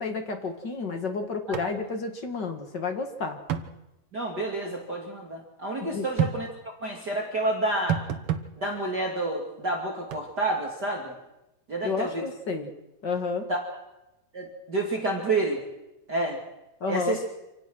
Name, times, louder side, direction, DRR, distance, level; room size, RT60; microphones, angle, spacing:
voice 1, 0.0-3.4 5.9-6.0 11.8-12.7 13.0-13.4 16.8-17.2, left 4 dB, 40° left, 5 dB, 1.9 m, -31 dB
sound 1, 1.5-1.7 2.0-2.1 3.5-3.7 6.2-6.4 7.9-8.5 10.1-10.2, right 9 dB, 60° right, 1.5 m, -28 dB
voice 2, 4.1-8.0 8.6-11.1 11.7-12.2 13.5-13.6 14.3-15.6 16.1-16.4 16.9-17.2, right 2 dB, 30° right, 0 dB, 2.6 m, -29 dB
26.5 x 17.5 x 6.2 m, 0.94 s
omnidirectional pair, 4.0 m